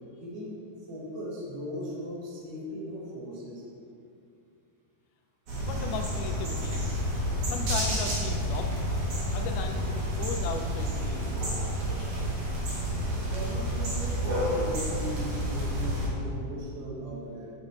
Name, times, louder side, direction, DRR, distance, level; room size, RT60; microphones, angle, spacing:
voice 1, 0.2-0.6 0.9-3.6 13.3-17.5, equal, 90° right, -4 dB, 3.0 m, -38 dB
sound 1, 5.5-16.1, equal, 50° right, 2.2 m, -30 dB
voice 2, 5.6-6.8 7.5-8.7 9.3-11.3, left 5 dB, 85° left, 4 dB, 2.2 m, -36 dB
6.2 x 6.1 x 4.3 m, 2.5 s
omnidirectional pair, 3.6 m